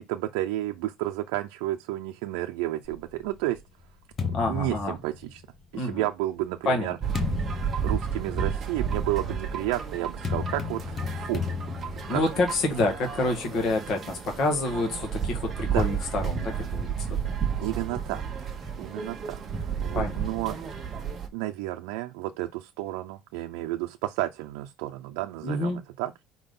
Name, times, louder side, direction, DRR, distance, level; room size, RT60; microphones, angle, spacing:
voice 1, 0.0-3.6 4.2-5.4 5.7-7.0 7.8-11.4 11.9-12.2 15.7-15.9 17.6-18.2 18.8-20.6 21.3-26.1, right 15 dB, 85° right, 0.5 m, -31 dB
sound 1, 2.8-5.7 6.4-13.4, left 6 dB, 20° left, 0.8 m, -35 dB
voice 2, 4.3-4.9 5.7-6.0 6.6-6.9 12.1-17.1 19.9-20.2 25.4-25.8, left 2 dB, 40° left, 1.6 m, -27 dB
sound 2, 7.0-21.3, right 6 dB, 20° right, 1.1 m, -32 dB
4.8 x 3.8 x 5.4 m
cardioid pair, 170°, 0 cm